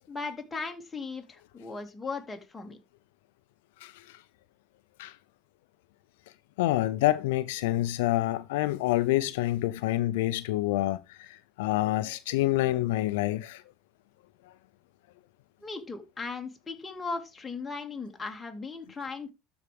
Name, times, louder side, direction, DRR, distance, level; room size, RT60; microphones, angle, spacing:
voice 1, 0.1-2.8 15.6-19.3, left 4 dB, 15° left, 2.1 m, -37 dB
voice 2, 6.6-11.0 11.6-13.6, left 16 dB, 85° left, 0.4 m, -27 dB
12.5 x 4.8 x 3.4 m
supercardioid pair, 105°, 0 cm